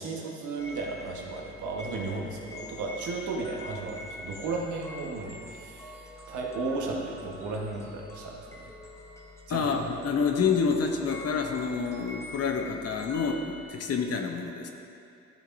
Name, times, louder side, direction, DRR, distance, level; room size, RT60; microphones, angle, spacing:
voice 1, 0.0-8.7 9.5-9.7, right 3 dB, 75° right, -1 dB, 1.5 m, -34 dB
sound 1, 0.6-13.6, left 1 dB, 10° left, 1.2 m, -45 dB
voice 2, 9.5-14.7, left 5 dB, 55° left, 4 dB, 0.9 m, -28 dB
12.5 x 7.2 x 2.7 m, 2.6 s
cardioid pair, 90°, 30 cm